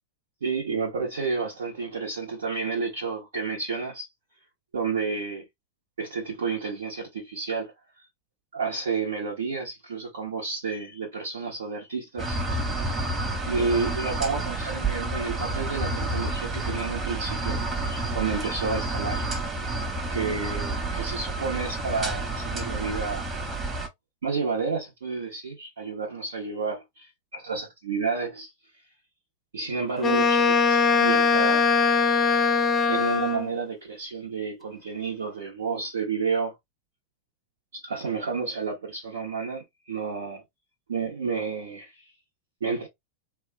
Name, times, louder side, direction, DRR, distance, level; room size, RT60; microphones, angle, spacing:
voice 1, 0.4-4.1 4.7-5.4 6.0-7.7 8.5-12.9 13.5-19.2 20.1-23.3 24.2-28.5 29.5-31.9 32.9-36.5 37.7-40.4 40.9-42.0 42.6-42.9, right 4 dB, 65° right, 1.2 m, -31 dB
sound 1, 12.2-23.9, right 2 dB, 20° right, 1.2 m, -30 dB
Wind instrument woodwind instrument, 30.0-33.5, left 5 dB, 20° left, 0.7 m, -21 dB
3.0 x 2.3 x 3.5 m
figure-of-eight pair, 90°, 0 cm